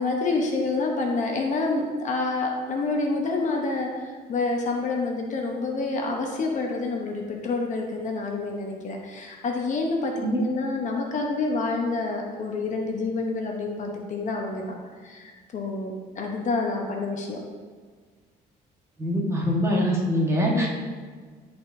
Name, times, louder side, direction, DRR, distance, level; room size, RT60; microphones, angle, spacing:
voice 1, 0.0-14.7 15.0-17.4 20.5-20.7, left 3 dB, 45° left, 1 dB, 1.0 m, -28 dB
voice 2, 19.0-20.7, equal, 15° right, -3 dB, 1.5 m, -23 dB
10.5 x 4.3 x 2.7 m, 1.5 s
cardioid pair, 110°, 17 cm